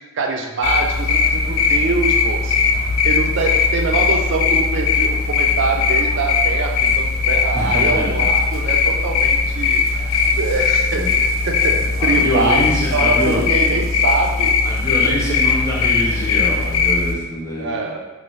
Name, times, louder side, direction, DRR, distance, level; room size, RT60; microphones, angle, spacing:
voice 1, 0.1-2.6 3.0-9.8 10.1-11.1 11.5-14.6 15.0-15.4 17.6-18.0, right 3 dB, 60° right, 2 dB, 0.4 m, -24 dB
sound 1, 0.6-17.2, left 5 dB, 75° left, 0.3 m, -19 dB
sound 2, 1.0-16.7, right 1 dB, 90° right, 0.8 m, -41 dB
voice 2, 7.5-8.2 10.9-11.1 12.0-13.4 14.6-17.8, left 1 dB, 15° left, -6 dB, 0.7 m, -24 dB
2.7 x 2.7 x 3.1 m, 1.1 s
head